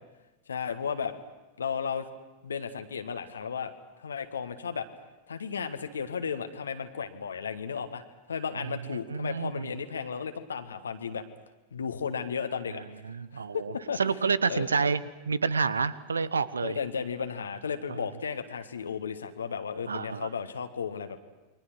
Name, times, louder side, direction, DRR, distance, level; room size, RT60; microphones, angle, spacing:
voice 1, 0.5-1.1 1.6-2.0 2.4-3.7 4.0-4.9 5.3-8.0 8.3-11.2 11.7-12.8 13.3-14.0 14.5-14.7 16.6-21.2, left 6 dB, 70° left, 7 dB, 1.5 m, -34 dB
voice 2, 9.1-9.7 13.0-16.8 19.9-20.3, right 5 dB, 75° right, 18 dB, 0.9 m, -29 dB
29.0 x 23.0 x 6.2 m, 1.1 s
figure-of-eight pair, 90°, 0 cm